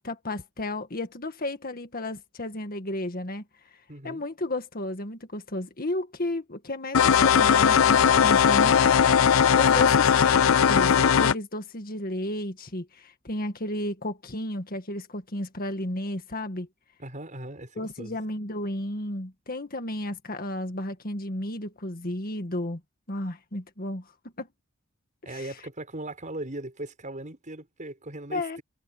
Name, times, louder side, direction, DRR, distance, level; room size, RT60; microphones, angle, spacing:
voice 1, 0.0-3.4 4.0-8.9 9.5-16.7 17.8-22.8 23.1-24.1 24.4-24.5 25.3-25.5 28.3-28.6, left 1 dB, 45° left, 1.9 m, -33 dB
voice 2, 3.9-4.2 9.8-9.9 17.0-18.2 25.2-28.6, right 1 dB, 40° right, 6.9 m, -39 dB
sound 1, 6.9-11.3, left 7 dB, 85° left, 0.5 m, -19 dB
head